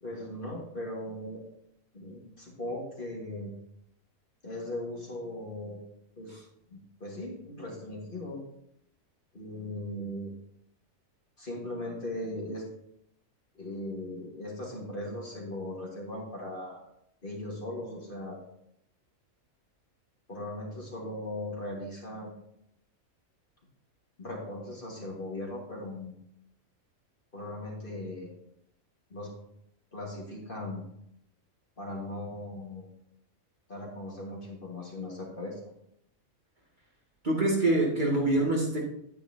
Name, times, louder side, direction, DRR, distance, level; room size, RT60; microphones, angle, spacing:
voice 1, 0.0-1.4 1.9-3.5 4.4-5.8 6.2-6.4 6.7-8.4 9.3-10.3 11.4-12.7 13.6-16.8 17.2-18.4 20.3-22.4 24.2-26.2 27.3-28.3 29.1-29.3 29.9-30.8 31.8-32.9 33.7-35.6, left 1 dB, 40° left, -2 dB, 2.0 m, -38 dB
voice 2, 37.2-38.8, right 2 dB, 35° right, -4 dB, 2.4 m, -25 dB
10.0 x 9.6 x 2.8 m, 0.76 s
omnidirectional pair, 1.5 m